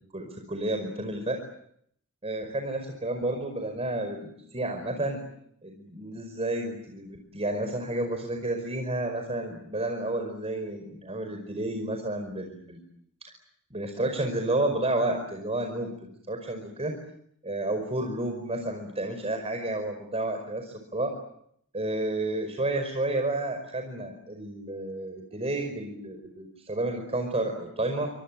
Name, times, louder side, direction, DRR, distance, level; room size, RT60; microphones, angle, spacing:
voice 1, 0.1-1.4 2.2-5.2 5.6-12.8 13.2-13.3 13.7-16.9 17.4-21.1 21.7-28.1, right 2 dB, 30° right, 5 dB, 5.2 m, -31 dB
30.0 x 26.0 x 7.7 m, 0.71 s
head